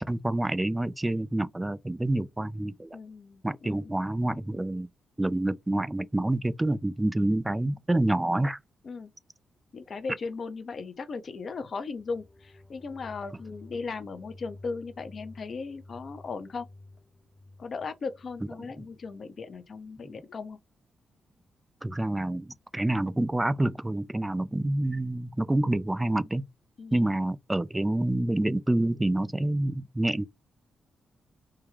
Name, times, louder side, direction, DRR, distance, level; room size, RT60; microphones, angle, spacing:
voice 1, 0.1-2.9 3.4-4.9 5.2-8.6 21.8-26.5 26.9-30.3, right 1 dB, 15° right, 0.3 m, -27 dB
voice 2, 2.9-3.9 8.8-9.1 9.7-16.7 17.6-20.6 26.8-27.0, left 4 dB, 55° left, 0.6 m, -37 dB
sound 1, 12.0-19.2, left 2 dB, 10° left, 0.9 m, -51 dB
3.4 x 2.2 x 3.2 m
hypercardioid pair, 45°, 0 cm